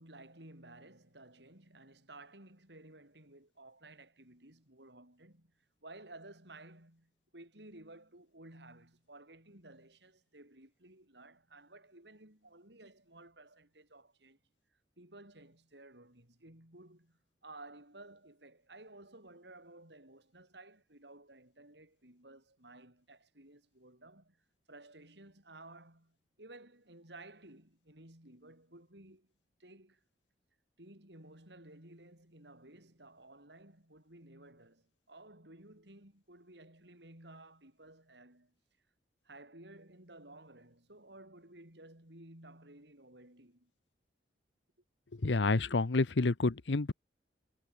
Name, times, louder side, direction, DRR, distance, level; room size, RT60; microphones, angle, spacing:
voice 1, 0.0-5.5 5.8-14.4 14.7-29.3 29.6-30.0 30.8-38.5 39.2-43.7, right 2 dB, 70° right, 6.7 m, -55 dB
voice 2, 45.2-46.9, left 3 dB, 85° left, 0.9 m, -29 dB
head